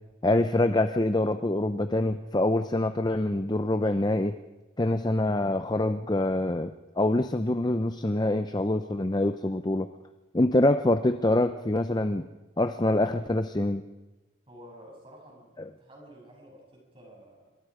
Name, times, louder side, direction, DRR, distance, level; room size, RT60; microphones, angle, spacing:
voice 1, 0.2-4.4 4.8-9.9 10.3-12.2 12.6-13.8, left 1 dB, 20° left, 10 dB, 0.6 m, -25 dB
voice 2, 14.5-17.5, equal, 25° right, -1 dB, 7.5 m, -51 dB
27.5 x 25.5 x 5.0 m, 1.1 s
head